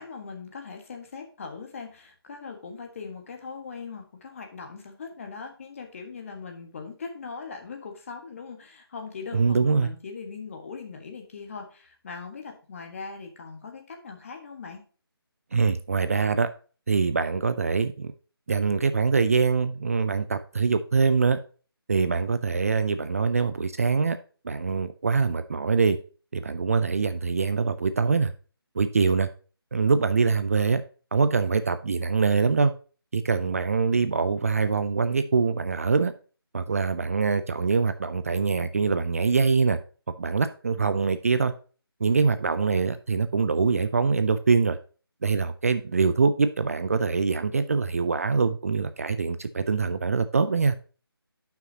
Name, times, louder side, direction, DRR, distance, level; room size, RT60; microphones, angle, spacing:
voice 1, 0.0-14.8, left 5 dB, 35° left, 4 dB, 1.5 m, -40 dB
voice 2, 9.3-9.9 15.5-16.5 16.9-18.1 18.5-21.4 21.9-24.2 24.4-26.0 26.3-28.3 28.8-29.3 29.7-30.8 31.1-32.7 33.1-36.1 36.5-39.8 40.1-41.5 42.0-44.8 45.2-50.8, right 4 dB, 35° right, 11 dB, 0.5 m, -24 dB
10.5 x 5.9 x 2.8 m, 0.37 s
figure-of-eight pair, 155°, 13 cm